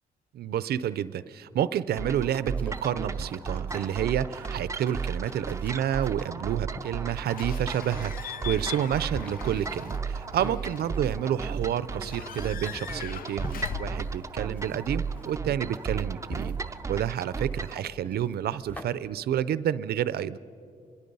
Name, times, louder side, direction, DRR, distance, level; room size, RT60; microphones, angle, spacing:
voice 1, 0.3-16.5 16.9-20.4, right 10 dB, 85° right, 16 dB, 0.5 m, -29 dB
sound 1, 2.0-17.8, right 5 dB, 20° right, 0.5 m, -34 dB
sound 2, 2.1-18.8, equal, 10° left, 1.0 m, -46 dB
Slam / Squeak / Alarm, 7.3-15.2, left 9 dB, 65° left, 0.5 m, -41 dB
25.0 x 22.0 x 5.4 m, 2.5 s
wide cardioid pair, 145°, 16 cm